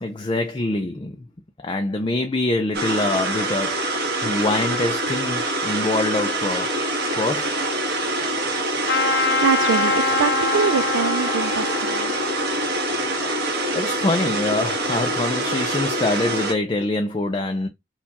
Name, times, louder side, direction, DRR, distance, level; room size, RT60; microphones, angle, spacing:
voice 1, 0.0-1.2 1.6-6.7 7.1-7.5 13.7-17.7, left 2 dB, 25° left, 0.4 m, -25 dB
sound 1, 2.7-16.5, right 1 dB, 55° right, 1.4 m, -25 dB
Trumpet, 8.8-13.9, left 3 dB, 60° left, 0.8 m, -25 dB
voice 2, 9.1-12.1, right 5 dB, 90° right, 0.5 m, -24 dB
4.4 x 2.4 x 4.1 m
head